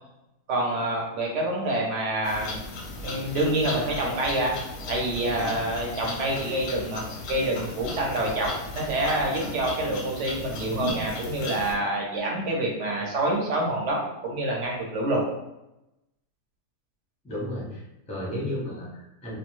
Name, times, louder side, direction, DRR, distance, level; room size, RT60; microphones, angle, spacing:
voice 1, 0.5-2.6 3.0-4.6 4.9-8.5 8.7-14.0 14.2-15.2, right 1 dB, 60° right, -2 dB, 0.9 m, -27 dB
sound 1, 2.2-11.7, left 2 dB, 65° left, 0.7 m, -36 dB
voice 2, 17.2-19.4, left 1 dB, 10° left, -5 dB, 0.4 m, -33 dB
2.6 x 2.2 x 3.0 m, 0.91 s
omnidirectional pair, 1.6 m